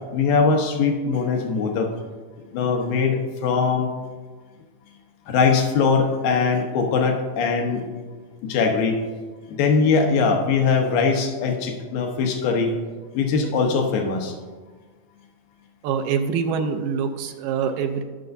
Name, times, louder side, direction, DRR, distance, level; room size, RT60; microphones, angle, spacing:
voice 1, 0.1-1.9 2.5-3.9 5.3-7.9 8.4-9.0 9.5-12.7 13.1-14.3, left 5 dB, 85° left, 3 dB, 2.8 m, -21 dB
voice 2, 15.8-18.0, right 6 dB, 80° right, 6 dB, 2.3 m, -25 dB
20.5 x 6.9 x 2.7 m, 1.4 s
omnidirectional pair, 4.0 m